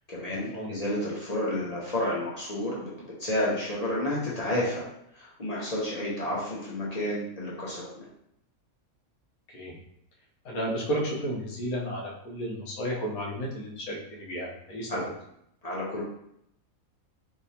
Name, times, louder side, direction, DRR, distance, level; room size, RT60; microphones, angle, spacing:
voice 1, 0.1-4.9 5.1-8.0 14.9-15.1 15.6-16.0, left 1 dB, 40° left, -6 dB, 0.6 m, -31 dB
voice 2, 10.4-14.9, equal, 80° left, -3 dB, 1.3 m, -32 dB
3.2 x 2.8 x 2.7 m, 0.75 s
omnidirectional pair, 1.5 m